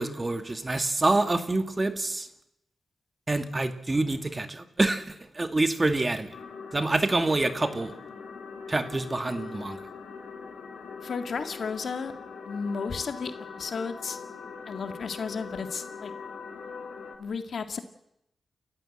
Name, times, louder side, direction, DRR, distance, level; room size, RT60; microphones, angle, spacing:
voice 1, 0.0-2.3 3.3-6.3 6.7-7.9 8.7-9.8, right 2 dB, 25° right, 8 dB, 2.2 m, -26 dB
sound 1, 6.3-17.2, left 5 dB, 85° left, 3.4 m, -42 dB
voice 2, 11.0-12.1 12.5-14.2 14.7-16.1 17.2-17.8, left 5 dB, 70° left, 7 dB, 2.0 m, -33 dB
29.5 x 14.5 x 7.9 m, 0.83 s
cardioid pair, 75°, 0 cm